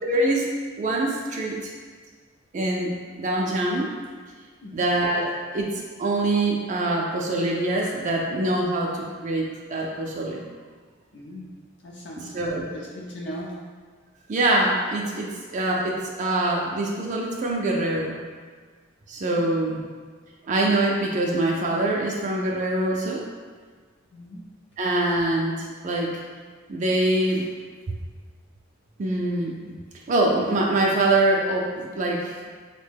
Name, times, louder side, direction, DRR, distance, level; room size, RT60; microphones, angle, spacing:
voice 1, 0.0-0.5 0.8-1.7 2.5-3.9 4.7-10.4 12.2-12.6 14.3-18.2 19.1-19.8 20.4-23.2 24.8-26.1 26.7-27.5 29.0-29.6 30.1-32.4, right 2 dB, 35° right, -2 dB, 0.3 m, -24 dB
voice 2, 11.1-11.5 11.8-13.6 24.1-24.4, equal, 60° left, -3 dB, 0.5 m, -39 dB
3.7 x 2.1 x 3.3 m, 1.5 s
head